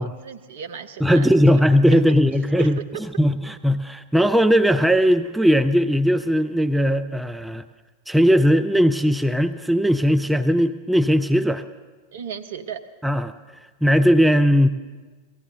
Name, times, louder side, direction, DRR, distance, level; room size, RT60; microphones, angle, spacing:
voice 1, 0.0-1.6 1.9-2.2 2.6-2.7 12.1-12.8, right 7 dB, 60° right, 8 dB, 0.8 m, -35 dB
voice 2, 1.0-2.8 3.2-7.6 8.1-11.6 13.0-13.3 13.8-14.7, equal, 5° right, 9 dB, 0.4 m, -18 dB
18.0 x 14.0 x 3.8 m, 1.3 s
figure-of-eight pair, 90°, 0 cm